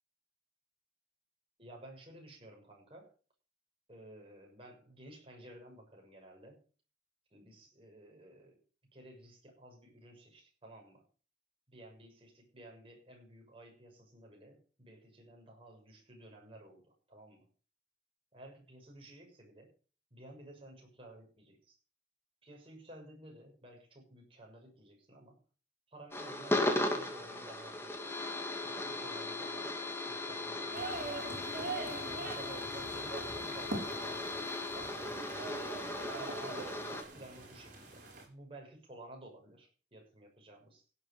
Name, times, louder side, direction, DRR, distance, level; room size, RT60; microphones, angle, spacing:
voice 1, 1.6-3.1 3.9-6.6 7.3-8.6 8.9-11.0 11.7-17.5 18.3-19.7 20.1-21.8 22.4-25.4 25.9-28.2 28.6-29.7 30.1-31.3 32.1-34.4 34.7-35.1 35.9-40.8, right 1 dB, 30° right, 0 dB, 6.8 m, -54 dB
sound 1, 26.1-37.0, left 2 dB, 15° left, 2.2 m, -37 dB
sound 2, 30.7-38.2, right 2 dB, 50° right, 7.3 m, -43 dB
17.0 x 8.3 x 5.4 m, 0.39 s
head